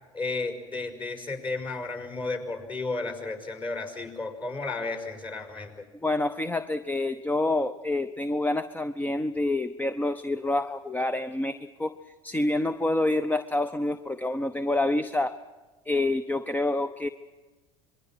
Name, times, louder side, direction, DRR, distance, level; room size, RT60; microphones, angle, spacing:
voice 1, 0.1-5.9, left 3 dB, 30° left, 6 dB, 5.6 m, -33 dB
voice 2, 6.0-11.9 12.2-15.4 15.9-17.1, left 2 dB, 10° left, 12 dB, 0.7 m, -27 dB
26.5 x 22.0 x 6.3 m, 1.2 s
hypercardioid pair, 80°, 16 cm